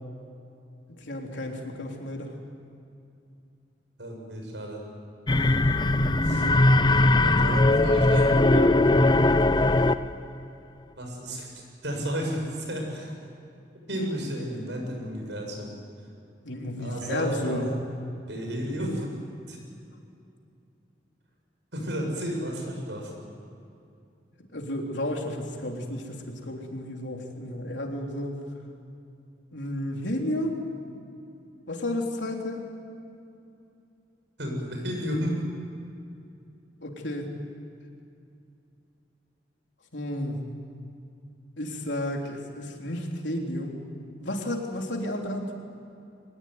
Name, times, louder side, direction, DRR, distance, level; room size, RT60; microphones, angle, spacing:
voice 1, 1.0-2.3 6.3-6.6 8.5-9.6 16.4-17.7 24.5-28.4 29.5-30.6 31.7-32.6 36.8-37.3 39.9-40.5 41.6-43.8 44.2-45.5, left 1 dB, 85° left, 1 dB, 3.6 m, -32 dB
voice 2, 4.0-4.8 6.2-6.4 6.9-8.3 11.0-13.1 13.9-15.7 16.8-17.6 18.3-19.1 19.5-19.6 21.7-23.1 34.4-35.4, equal, 80° right, 1 dB, 7.2 m, -32 dB
sound 1, 5.3-10.2, left 2 dB, 25° left, 0.6 m, -20 dB
23.0 x 20.5 x 9.5 m, 2.6 s
head